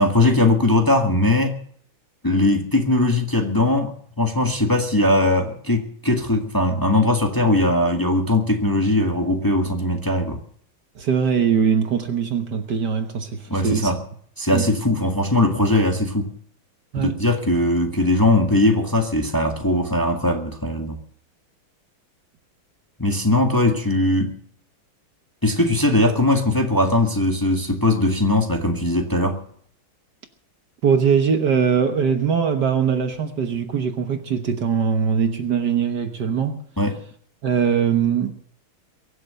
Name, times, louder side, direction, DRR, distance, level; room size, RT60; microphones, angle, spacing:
voice 1, 0.0-1.6 2.2-10.4 13.5-14.0 14.4-16.3 17.0-21.0 23.0-24.4 25.4-29.4 36.8-37.0, left 1 dB, 10° left, 1.5 m, -20 dB
voice 2, 11.0-13.9 14.5-14.7 16.9-17.2 30.8-36.6 37.4-38.3, right 7 dB, 55° right, 1.6 m, -21 dB
23.0 x 7.8 x 6.6 m
omnidirectional pair, 2.3 m